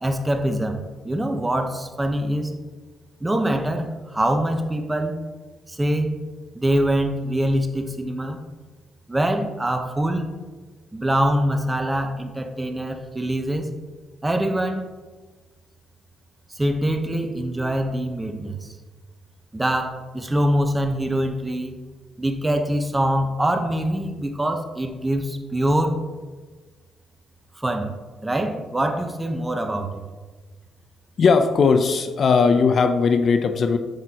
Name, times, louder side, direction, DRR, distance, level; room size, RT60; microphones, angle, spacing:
voice 1, 0.0-2.6 3.2-5.2 5.7-6.1 6.5-8.4 9.1-10.3 10.9-13.7 14.2-14.9 16.5-18.7 19.5-21.8 22.2-26.0 27.6-27.9 28.2-30.0, right 1 dB, 15° right, 5 dB, 1.0 m, -24 dB
voice 2, 31.2-33.8, left 5 dB, 50° left, 9 dB, 0.6 m, -18 dB
8.9 x 8.2 x 3.0 m, 1.3 s
cardioid pair, 90°, 0 cm